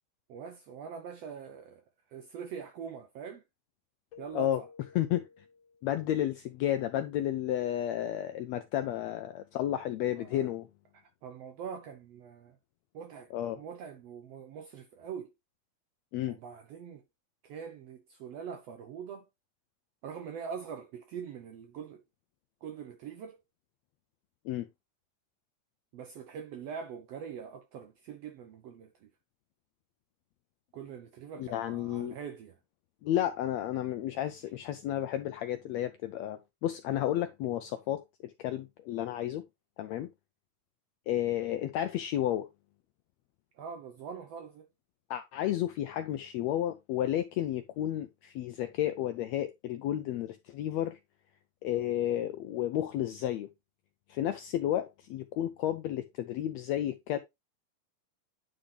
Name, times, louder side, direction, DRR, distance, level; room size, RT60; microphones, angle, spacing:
voice 1, 0.3-1.8 2.1-3.4 4.2-4.7 10.2-10.4 10.9-12.6 12.9-13.3 13.6-15.3 16.3-17.0 17.4-19.3 20.0-22.0 22.6-23.4 25.9-29.1 30.7-32.6 43.6-44.7, right 7 dB, 75° right, 1.5 m, -43 dB
Keyboard (musical), 4.1-6.1, left 5 dB, 60° left, 2.2 m, -54 dB
voice 2, 4.9-5.3 5.8-10.7 13.3-13.6 16.1-16.4 24.4-24.7 31.4-32.2 33.0-39.4 39.8-40.1 41.1-42.5 45.1-51.0 51.6-53.5 54.1-57.2, left 12 dB, 85° left, 1.5 m, -32 dB
9.9 x 3.9 x 3.3 m
omnidirectional pair, 3.7 m